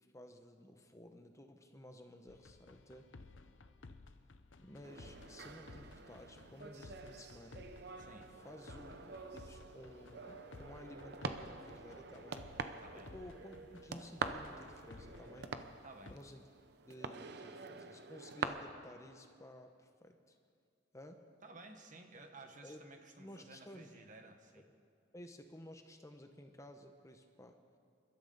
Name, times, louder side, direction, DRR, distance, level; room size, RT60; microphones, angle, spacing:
voice 1, 0.1-3.1 4.6-7.7 8.4-15.8 16.1-16.5 16.9-20.4 20.9-21.2 22.6-22.8 23.2-23.9 24.6-24.8 25.1-27.8, left 1 dB, 15° left, 5 dB, 0.8 m, -54 dB
sound 1, 2.3-16.1, left 3 dB, 90° left, 0.8 m, -57 dB
sound 2, 4.8-18.4, right 4 dB, 60° right, 0.8 m, -46 dB
voice 2, 8.0-8.3 12.8-13.1 15.8-16.1 21.4-24.6, right 2 dB, 45° right, 5 dB, 1.4 m, -55 dB
28.5 x 13.0 x 4.0 m, 2.3 s
head